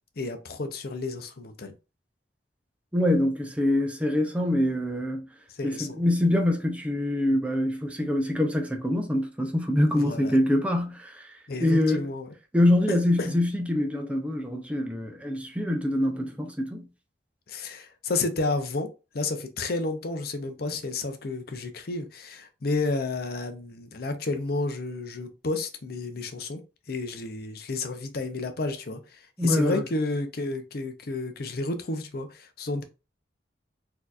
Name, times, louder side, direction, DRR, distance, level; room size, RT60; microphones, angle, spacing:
voice 1, 0.2-1.7 5.5-6.0 9.9-10.4 11.5-12.3 12.9-13.3 17.5-18.9 19.1-26.6 26.9-32.8, left 3 dB, 60° left, 0.6 m, -31 dB
voice 2, 2.9-5.2 5.6-11.3 11.6-12.1 12.5-16.9 29.4-29.8, left 1 dB, 5° right, 0.5 m, -25 dB
4.2 x 2.8 x 2.4 m
head